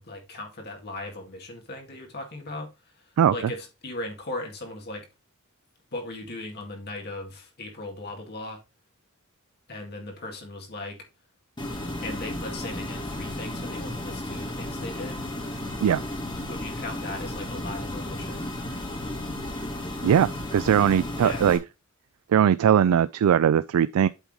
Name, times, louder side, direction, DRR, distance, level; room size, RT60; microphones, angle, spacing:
voice 1, 0.0-5.1 5.9-8.6 9.7-11.1 12.0-15.2 16.4-18.5 21.2-21.5, left 2 dB, 50° left, 2.0 m, -38 dB
sound 1, 11.6-21.6, left 1 dB, 20° left, 2.0 m, -34 dB
voice 2, 20.0-21.6 22.3-24.1, right 8 dB, 80° right, 0.3 m, -20 dB
8.2 x 3.6 x 4.7 m
head